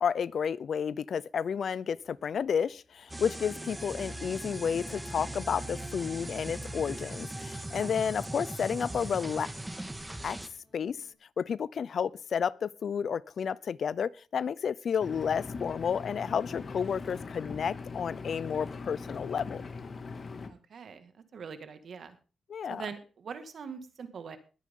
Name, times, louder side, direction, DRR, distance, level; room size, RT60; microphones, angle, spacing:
voice 1, 0.0-9.5 10.2-10.4 10.7-11.0 11.4-19.6 22.5-22.8, left 7 dB, 65° left, 0.5 m, -31 dB
sound 1, 1.3-11.1, left 1 dB, 25° left, 6.8 m, -65 dB
sound 2, 3.1-10.5, right 1 dB, 10° right, 1.6 m, -39 dB
Engine, 15.0-20.5, left 4 dB, 45° left, 2.2 m, -41 dB
voice 2, 20.5-22.2 22.7-24.4, right 6 dB, 65° right, 2.0 m, -43 dB
20.5 x 9.3 x 3.8 m
cardioid pair, 85°, 0 cm